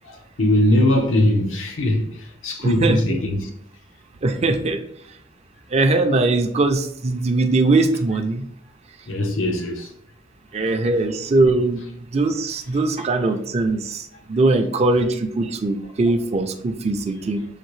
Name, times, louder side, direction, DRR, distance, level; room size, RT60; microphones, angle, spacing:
voice 1, 0.0-3.5 9.1-9.9, left 1 dB, 85° left, 0.9 m, -21 dB
voice 2, 2.6-3.0 4.2-4.8 5.7-8.4 10.5-11.9 12.1-17.4, right 2 dB, 35° right, 0.4 m, -20 dB
6.5 x 2.6 x 3.1 m
head